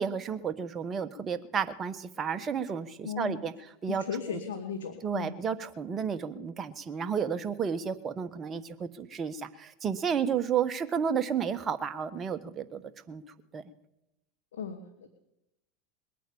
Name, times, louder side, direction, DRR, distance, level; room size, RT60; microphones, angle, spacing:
voice 1, 0.0-3.5 3.8-4.0 5.0-12.8 13.1-13.2 13.5-13.6, right 7 dB, 30° right, 9 dB, 1.3 m, -32 dB
voice 2, 3.0-3.4 3.9-5.3 14.5-15.1, left 6 dB, 80° left, 6 dB, 1.5 m, -36 dB
21.5 x 9.1 x 7.0 m, 0.90 s
hypercardioid pair, 95°, 0 cm